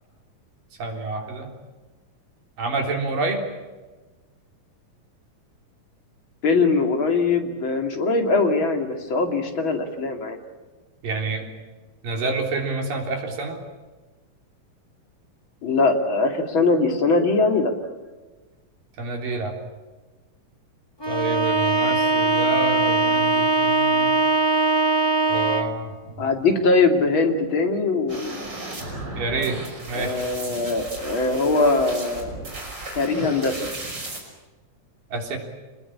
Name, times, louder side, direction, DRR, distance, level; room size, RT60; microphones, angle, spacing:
voice 1, 0.8-1.5 2.6-3.4 11.0-11.5 12.0-13.6 19.0-19.6 21.1-24.1 25.3-26.3 29.2-29.6 29.9-30.2 35.1-35.4, right 3 dB, 75° right, 2 dB, 5.3 m, -28 dB
voice 2, 6.4-10.4 15.6-17.7 26.2-28.4 29.9-32.3 32.9-33.7, left 3 dB, 40° left, 4 dB, 3.0 m, -21 dB
Bowed string instrument, 21.0-25.8, right 3 dB, 15° left, 0.8 m, -21 dB
sound 1, 28.1-34.2, right 2 dB, 30° right, 6.2 m, -35 dB
27.0 x 20.5 x 8.6 m, 1.3 s
omnidirectional pair, 4.0 m